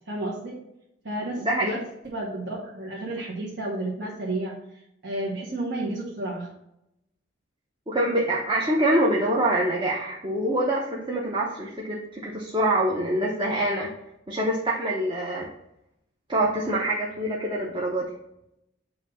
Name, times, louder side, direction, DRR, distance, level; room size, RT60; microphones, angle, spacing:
voice 1, 0.1-0.5 1.0-1.8 2.0-4.5 5.0-6.5, right 2 dB, 60° right, -5 dB, 1.4 m, -31 dB
voice 2, 1.4-1.7 7.9-13.9 14.3-15.5 16.3-18.1, right 1 dB, 25° right, -3 dB, 0.8 m, -25 dB
7.8 x 2.7 x 5.5 m, 0.83 s
head